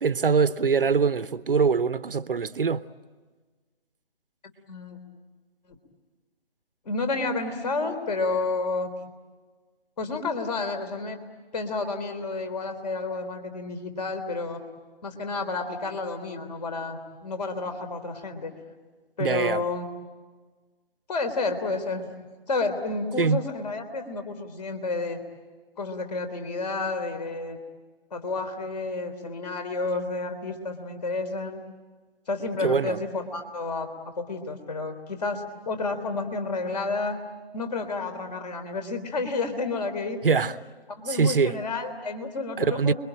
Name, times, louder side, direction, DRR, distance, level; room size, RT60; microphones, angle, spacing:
voice 1, 0.0-2.8 19.2-19.7 23.2-23.4 32.6-33.0 40.2-40.6 41.1-41.6 42.6-42.9, right 5 dB, 60° right, 0.9 m, -23 dB
voice 2, 4.7-5.0 6.9-8.9 10.0-11.2 11.5-14.6 15.0-18.5 19.2-19.9 21.1-22.0 22.5-25.2 25.8-27.6 28.1-31.6 32.3-33.9 34.2-37.2 37.5-40.4 41.0-42.9, left 3 dB, 40° left, 3.5 m, -30 dB
29.5 x 22.5 x 9.0 m
figure-of-eight pair, 150°, 31 cm